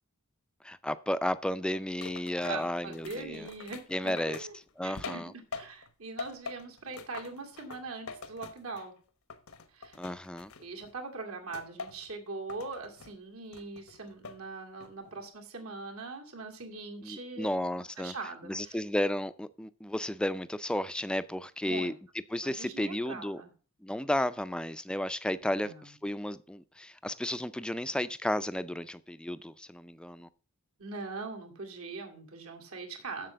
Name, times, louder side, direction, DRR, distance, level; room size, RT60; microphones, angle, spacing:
voice 1, 0.6-3.5 3.9-4.5 4.8-5.3 10.0-10.5 17.0-18.1 18.4-21.9 22.3-23.4 23.8-30.3, left 1 dB, 5° left, 0.4 m, -33 dB
sound 1, 2.0-5.9 6.2-9.0 9.3-10.9 11.5-12.1 12.5-13.1 13.5-14.4 14.8-15.2, left 5 dB, 75° left, 1.1 m, -44 dB
voice 2, 2.4-4.6 4.8-8.9 9.7-10.0 10.6-17.5 18.0-18.8 21.6-21.9 22.4-23.5 25.6-25.9 30.8-33.3, right 3 dB, 80° right, 2.2 m, -41 dB
7.5 x 7.0 x 6.7 m
head